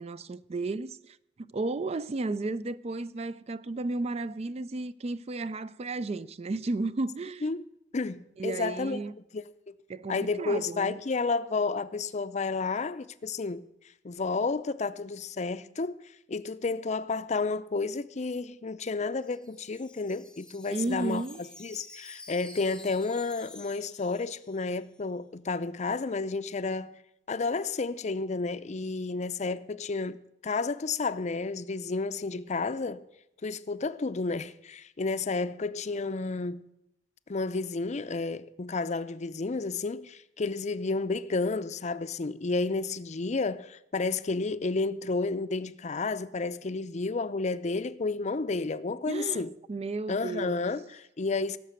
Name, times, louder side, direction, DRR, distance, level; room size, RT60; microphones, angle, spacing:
voice 1, 0.0-7.5 8.4-9.1 9.9-11.0 20.7-21.4 49.1-50.6, right 3 dB, 35° right, 0.4 m, -33 dB
voice 2, 7.9-9.0 9.3-9.7 10.1-13.7 14.0-21.2 21.6-27.0 27.3-33.0 33.4-36.6 37.3-49.5 50.1-51.6, left 3 dB, 40° left, 0.5 m, -31 dB
Wind chime, 18.9-24.9, left 2 dB, 5° left, 0.8 m, -50 dB
17.5 x 6.6 x 8.0 m
head